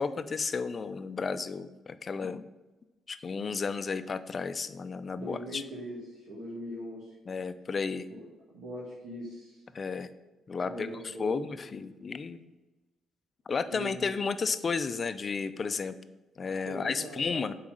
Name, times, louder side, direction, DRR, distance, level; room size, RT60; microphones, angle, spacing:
voice 1, 0.0-2.5 3.1-5.6 7.3-8.1 9.7-10.1 10.5-12.4 13.5-15.9 16.4-17.5, left 5 dB, 40° left, 12 dB, 0.5 m, -33 dB
voice 2, 5.2-7.1 8.1-8.2 8.5-9.6 10.6-11.4 13.7-14.1 16.7-17.5, equal, 85° right, -7 dB, 2.0 m, -41 dB
7.1 x 4.7 x 6.5 m, 1.1 s
cardioid pair, 90°, 0 cm